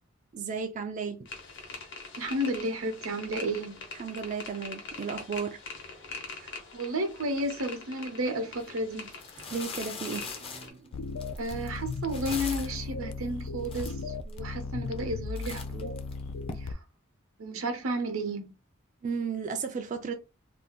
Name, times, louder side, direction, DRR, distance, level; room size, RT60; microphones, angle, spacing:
voice 1, 0.3-1.3 3.9-5.6 9.4-11.1 19.0-20.1, right 5 dB, 40° right, 0.3 m, -34 dB
sound 1, 1.3-10.7, left 3 dB, 60° left, 1.0 m, -43 dB
voice 2, 2.2-3.8 6.4-9.1 11.4-16.0 16.6-16.8 17.4-18.5, right 1 dB, 80° right, 0.7 m, -32 dB
sound 2, 8.5-8.7 9.1-12.9 13.4-13.5 13.7-14.4 14.9-15.1 15.4-16.5, left 5 dB, 25° left, 0.5 m, -41 dB
sound 3, 10.9-16.7, left 4 dB, 85° left, 0.4 m, -36 dB
2.6 x 2.4 x 3.5 m
head